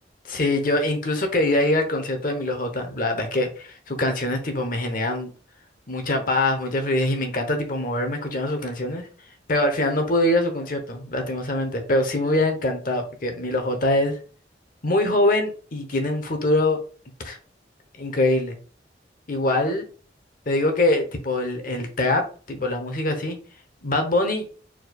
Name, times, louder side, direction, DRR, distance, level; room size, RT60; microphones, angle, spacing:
voice 1, 0.2-5.3 5.9-9.1 9.5-14.2 14.8-16.8 17.2-17.4 18.0-18.6 19.3-19.8 20.5-23.4 23.8-24.4, left 1 dB, 50° left, 5 dB, 0.9 m, -23 dB
4.5 x 4.3 x 2.3 m, 0.38 s
head